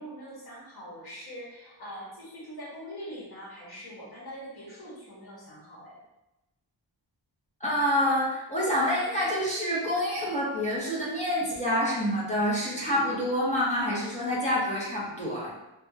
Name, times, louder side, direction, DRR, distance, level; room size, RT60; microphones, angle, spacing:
voice 1, 0.0-6.0, equal, 55° left, -6 dB, 1.4 m, -43 dB
voice 2, 7.6-15.5, equal, 15° left, -7 dB, 1.0 m, -27 dB
3.4 x 2.4 x 2.8 m, 0.96 s
wide cardioid pair, 90°, 45 cm